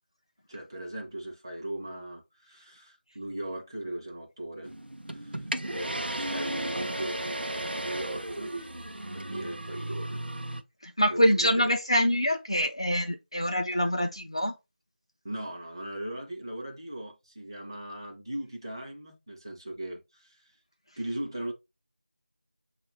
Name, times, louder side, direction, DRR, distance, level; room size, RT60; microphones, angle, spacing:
voice 1, 0.5-4.7 5.1-8.5 9.1-10.3 11.1-11.7 15.2-20.4 21.0-21.5, right 1 dB, 25° right, 0.7 m, -38 dB
sound 1, 4.6-10.6, right 1 dB, 70° right, 0.6 m, -35 dB
voice 2, 10.8-14.5, equal, 30° left, 0.4 m, -25 dB
5.9 x 2.4 x 3.1 m
figure-of-eight pair, 170°, 6 cm